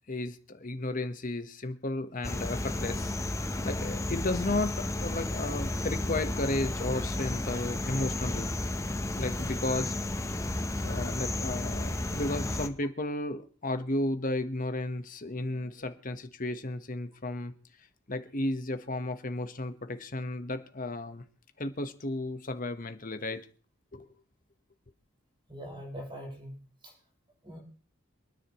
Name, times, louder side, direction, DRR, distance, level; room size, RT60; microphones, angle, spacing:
voice 1, 0.1-3.2 3.6-8.5 9.2-9.9 10.3-10.4 10.8-17.5 18.1-21.2 21.6-23.4 23.9-24.1, left 2 dB, 40° left, 1.2 m, -33 dB
sound 1, 2.2-12.7, left 1 dB, 15° left, 0.8 m, -32 dB
voice 2, 25.5-26.5 26.8-26.9 27.4-27.6, equal, 25° right, 6.9 m, -42 dB
28.0 x 10.0 x 3.1 m
head